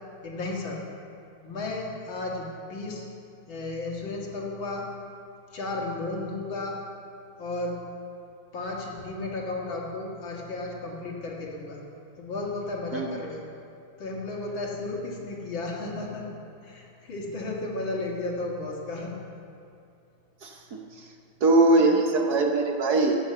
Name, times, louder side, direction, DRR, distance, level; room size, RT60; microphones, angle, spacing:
voice 1, 0.2-0.8 1.4-3.1 3.5-4.9 5.5-6.8 7.4-7.8 8.5-11.8 12.2-13.5 14.0-16.3 16.6-19.2, left 2 dB, 70° left, -2 dB, 2.6 m, -33 dB
voice 2, 21.4-23.2, right 2 dB, 60° right, 2 dB, 1.3 m, -21 dB
17.0 x 6.8 x 6.8 m, 2.6 s
omnidirectional pair, 2.2 m